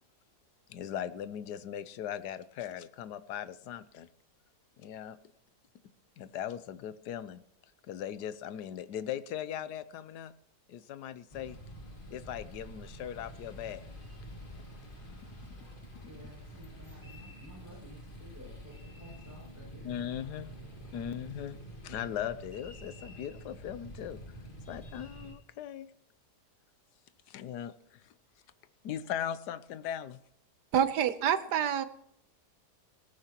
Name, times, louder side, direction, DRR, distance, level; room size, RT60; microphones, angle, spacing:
voice 1, 0.7-4.1 4.8-5.2 6.2-7.4 7.8-10.3 10.7-11.6 12.1-13.8 19.8-20.5 20.9-21.6 21.8-24.2 24.7-25.9 27.3-28.1 28.8-30.2, left 10 dB, 85° left, 1.3 m, -39 dB
sound 1, 11.3-25.3, equal, 30° left, 2.6 m, -48 dB
voice 2, 16.0-20.3 20.9-21.2, equal, 10° right, 6.8 m, -53 dB
voice 3, 30.7-31.8, right 9 dB, 85° right, 1.5 m, -27 dB
18.5 x 15.0 x 3.0 m
omnidirectional pair, 1.7 m